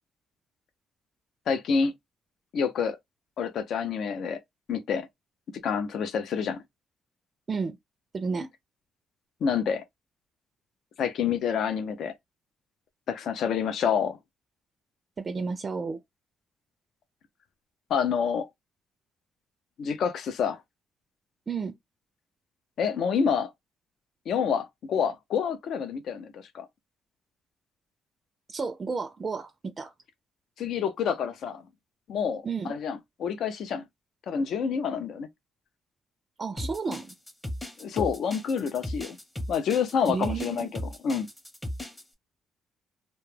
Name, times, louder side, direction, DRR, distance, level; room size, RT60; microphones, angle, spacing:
voice 1, 1.5-1.9 2.5-3.0 3.4-4.4 4.7-5.1 5.6-6.6 9.4-9.8 11.0-12.1 13.1-14.2 17.9-18.5 19.8-20.6 22.8-23.5 24.3-26.7 30.6-31.6 32.1-33.8 34.3-35.3 37.8-39.2 39.5-41.3, left 7 dB, 70° left, 0.4 m, -28 dB
voice 2, 8.1-8.5 15.2-16.0 21.5-21.7 28.5-29.9 32.4-32.7 36.4-37.1 40.1-40.7, right 4 dB, 35° right, 0.4 m, -32 dB
sound 1, 36.6-42.0, left 1 dB, 10° left, 0.7 m, -36 dB
2.2 x 2.0 x 3.1 m
cardioid pair, 90°, 0 cm